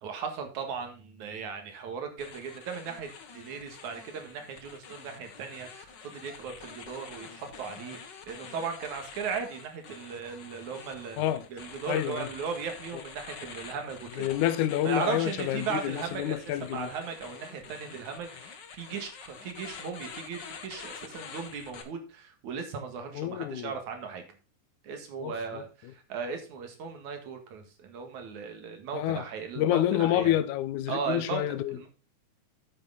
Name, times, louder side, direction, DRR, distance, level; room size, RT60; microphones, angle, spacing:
voice 1, 0.0-3.1 3.3-8.0 8.3-14.3 14.8-24.2 24.8-30.4 30.9-31.9, right 6 dB, 75° right, 3.2 m, -37 dB
sound 1, 2.2-21.8, left 6 dB, 50° left, 1.4 m, -47 dB
voice 2, 11.9-12.3 12.9-13.0 14.2-16.9 23.1-23.7 25.2-25.6 28.9-29.2 29.6-31.8, left 12 dB, 85° left, 2.2 m, -28 dB
9.1 x 8.0 x 4.0 m
omnidirectional pair, 3.5 m